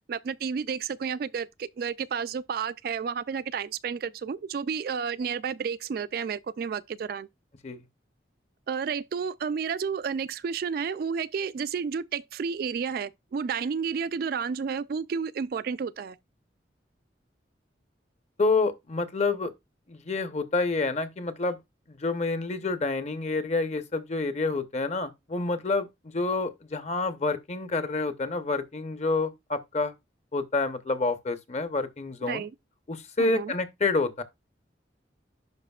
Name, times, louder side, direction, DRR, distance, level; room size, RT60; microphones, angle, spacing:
voice 1, 0.1-7.3 8.7-16.2 32.3-32.5 33.2-33.5, right 6 dB, 55° right, 0.3 m, -31 dB
voice 2, 18.4-19.5 19.9-21.6 21.9-25.9 26.1-29.9 30.3-32.4 32.9-34.2, left 3 dB, 35° left, 0.8 m, -28 dB
10.5 x 5.0 x 2.3 m
head